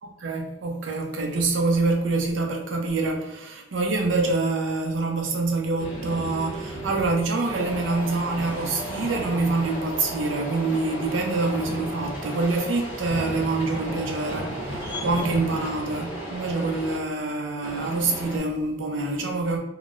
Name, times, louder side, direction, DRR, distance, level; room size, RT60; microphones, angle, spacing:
voice 1, 0.0-19.6, right 3 dB, 75° right, 2 dB, 0.6 m, -26 dB
sound 1, 5.8-7.1 7.4-17.0 17.6-18.4, right 1 dB, 10° right, 0.9 m, -34 dB
3.8 x 2.1 x 2.4 m, 0.92 s
head